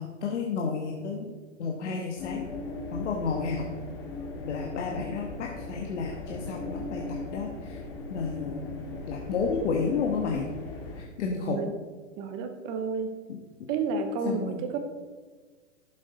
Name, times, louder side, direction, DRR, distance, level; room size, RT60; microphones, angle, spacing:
voice 1, 0.0-1.3 1.6-2.5 2.9-3.7 4.4-8.8 9.1-10.5 10.9-11.7 14.2-14.7, left 5 dB, 60° left, 1 dB, 1.5 m, -31 dB
sound 1, 2.2-11.0, left 3 dB, 45° left, 2.2 m, -38 dB
voice 2, 11.4-11.7 12.2-13.1 13.7-14.8, right 4 dB, 15° right, 7 dB, 0.3 m, -31 dB
11.0 x 7.3 x 4.1 m, 1.4 s
hypercardioid pair, 130°, 39 cm